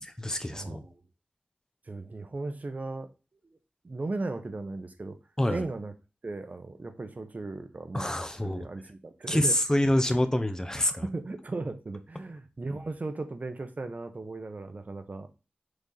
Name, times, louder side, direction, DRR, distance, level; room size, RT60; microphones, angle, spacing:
voice 1, 0.0-0.8 5.4-5.6 7.9-8.7 9.3-11.0, left 1 dB, 20° left, 0.8 m, -27 dB
voice 2, 0.5-0.9 1.9-3.1 3.8-5.2 5.5-5.9 6.2-8.1 8.4-9.6 9.9-10.0 10.8-15.3, right 3 dB, 50° right, 1.0 m, -36 dB
6.8 x 4.2 x 4.0 m
wide cardioid pair, 80°, 3 cm